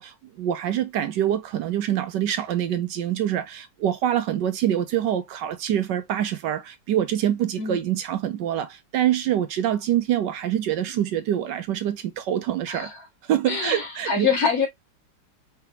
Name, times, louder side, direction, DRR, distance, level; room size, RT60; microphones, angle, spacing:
voice 1, 0.0-12.9 13.2-14.3, right 11 dB, 70° right, 1.2 m, -25 dB
voice 2, 13.5-14.7, left 5 dB, 45° left, 2.5 m, -24 dB
4.9 x 3.3 x 2.8 m
omnidirectional pair, 2.1 m